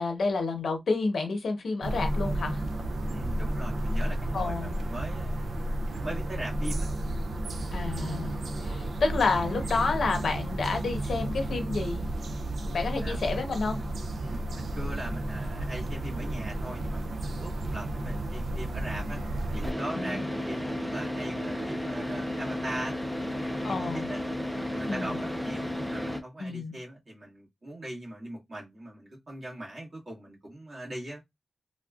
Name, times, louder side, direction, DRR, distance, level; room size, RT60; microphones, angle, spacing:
voice 1, 0.0-2.6 4.3-4.7 7.7-8.4 8.6-12.0 12.7-13.8 20.0-20.3 23.6-24.1 24.9-25.1 26.4-26.7, left 3 dB, 75° left, 0.8 m, -29 dB
sound 1, 1.8-19.7, right 1 dB, 70° right, 0.4 m, -32 dB
voice 2, 3.1-5.6 6.0-6.9 13.0-13.2 14.2-19.2 19.5-24.2 24.7-31.2, right 1 dB, 45° right, 1.7 m, -40 dB
Car / Idling, 19.6-26.2, left 1 dB, 5° right, 0.5 m, -33 dB
3.5 x 2.3 x 2.4 m
wide cardioid pair, 135°, 0 cm